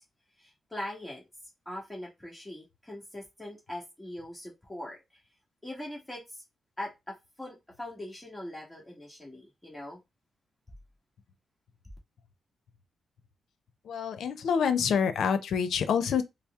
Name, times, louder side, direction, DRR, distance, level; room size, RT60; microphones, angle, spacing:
voice 1, 0.4-1.2 1.6-5.0 5.6-6.4 6.8-10.0, left 1 dB, 10° left, 1.5 m, -41 dB
voice 2, 13.9-16.2, left 7 dB, 80° left, 0.6 m, -27 dB
4.1 x 2.0 x 3.5 m
cardioid pair, 90°, 0 cm